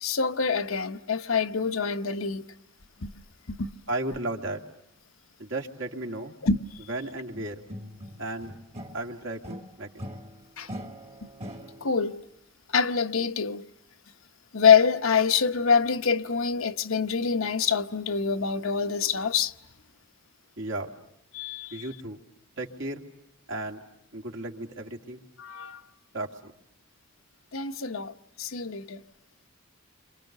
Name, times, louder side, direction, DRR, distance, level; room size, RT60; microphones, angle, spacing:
voice 1, 0.0-2.4 3.0-3.1 3.5-3.7 6.4-6.6 10.6-10.7 11.8-12.2 12.7-13.6 14.5-19.5 21.3-21.8 25.4-25.8 27.5-28.1 28.4-29.0, left 6 dB, 70° left, 1.0 m, -25 dB
voice 2, 3.9-4.6 5.4-6.3 6.9-7.6 8.2-8.5 8.9-9.9 20.6-20.9 21.7-22.2 22.6-23.0 23.5-23.8 24.1-25.2 26.1-26.5, right 2 dB, 65° right, 2.5 m, -34 dB
sound 1, 7.3-9.1 9.4-12.0, equal, 30° right, 1.7 m, -41 dB
29.5 x 26.0 x 6.7 m
head